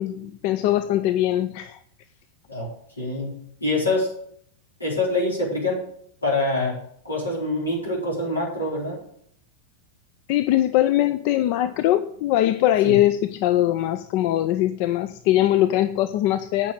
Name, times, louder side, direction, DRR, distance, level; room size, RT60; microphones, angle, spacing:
voice 1, 0.0-1.8 10.3-16.7, left 13 dB, 45° left, 12 dB, 0.4 m, -21 dB
voice 2, 3.0-4.1 4.8-5.8 6.2-9.0 12.8-12.9, left 2 dB, 80° left, -4 dB, 4.5 m, -25 dB
9.0 x 6.0 x 7.5 m, 0.66 s
figure-of-eight pair, 90°, 0 cm